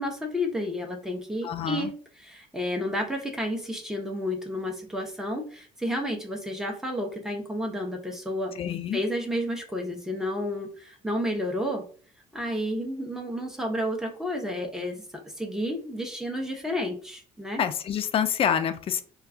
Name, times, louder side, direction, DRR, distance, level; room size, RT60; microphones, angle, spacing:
voice 1, 0.0-8.5 8.9-11.8 12.3-15.0 15.4-17.6, left 1 dB, 5° right, 2 dB, 0.7 m, -31 dB
voice 2, 1.4-1.9 8.6-9.0 17.6-19.0, left 8 dB, 35° left, 10 dB, 0.3 m, -27 dB
2.3 x 2.3 x 3.7 m, 0.42 s
cardioid pair, 110°, 17 cm